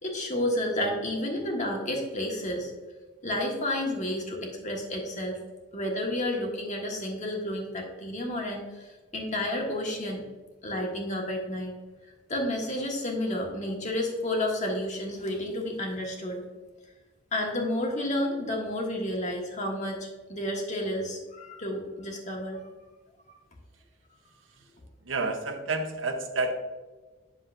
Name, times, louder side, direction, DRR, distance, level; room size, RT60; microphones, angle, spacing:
voice 1, 0.0-2.7 3.2-5.4 5.7-10.2 10.6-11.7 12.3-16.4 17.3-22.6, left 1 dB, 40° left, 0 dB, 1.5 m, -31 dB
voice 2, 25.0-26.5, right 3 dB, 80° right, 6 dB, 0.9 m, -29 dB
8.4 x 6.7 x 2.5 m, 1.3 s
head